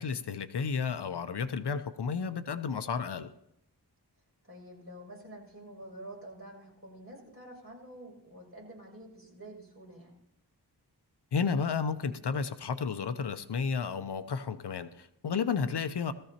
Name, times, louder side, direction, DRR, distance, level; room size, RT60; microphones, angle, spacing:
voice 1, 0.0-3.3 11.3-16.1, left 5 dB, 70° left, 11 dB, 0.7 m, -32 dB
voice 2, 4.4-10.1, right 1 dB, 35° right, -3 dB, 6.8 m, -48 dB
20.0 x 14.0 x 2.9 m, 0.79 s
wide cardioid pair, 90°, 41 cm